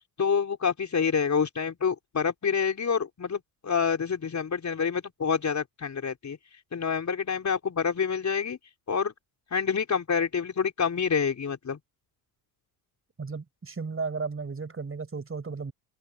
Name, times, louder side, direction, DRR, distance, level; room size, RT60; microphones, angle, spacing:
voice 1, 0.2-6.4 6.7-8.6 8.9-9.1 9.5-11.8, left 6 dB, 35° left, 4.7 m, -27 dB
voice 2, 13.2-15.7, right 4 dB, 25° right, 7.2 m, -34 dB
open air
hypercardioid pair, 70°, 48 cm